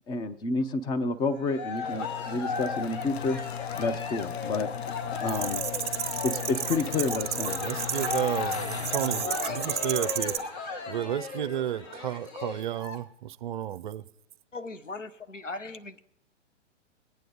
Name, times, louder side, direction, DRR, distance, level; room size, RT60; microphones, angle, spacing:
voice 1, 0.1-3.4 3.7-4.7 5.2-5.6 6.2-7.6, left 3 dB, 10° left, 0.6 m, -29 dB
Cheering, 1.2-13.0, left 5 dB, 35° left, 1.7 m, -37 dB
sound 1, 1.8-11.3, left 8 dB, 60° left, 0.6 m, -37 dB
sound 2, 5.3-10.4, right 9 dB, 15° right, 1.2 m, -32 dB
voice 2, 7.6-10.4 10.9-14.0, right 11 dB, 40° right, 0.6 m, -32 dB
voice 3, 8.7-9.8 14.5-16.0, left 2 dB, 85° left, 1.0 m, -38 dB
21.5 x 9.0 x 3.9 m
figure-of-eight pair, 110°, 36 cm